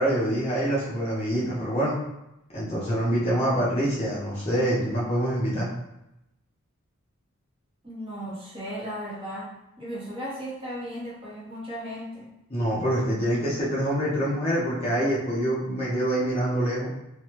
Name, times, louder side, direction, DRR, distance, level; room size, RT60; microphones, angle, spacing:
voice 1, 0.0-2.0 2.5-5.7 12.5-16.9, right 1 dB, 30° left, -7 dB, 0.7 m, -25 dB
voice 2, 7.8-9.5 9.8-12.3, equal, 25° right, -7 dB, 0.9 m, -36 dB
3.3 x 2.2 x 2.9 m, 0.88 s
head